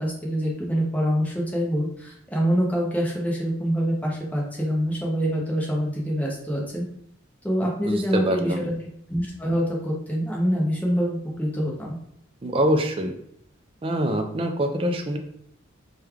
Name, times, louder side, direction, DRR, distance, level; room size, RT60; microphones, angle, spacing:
voice 1, 0.0-6.8 7.4-8.7 9.1-12.0, equal, 5° left, -3 dB, 0.7 m, -25 dB
voice 2, 7.9-8.7 12.4-13.2 13.8-15.2, equal, 25° right, 4 dB, 0.4 m, -24 dB
3.2 x 2.3 x 3.4 m, 0.71 s
head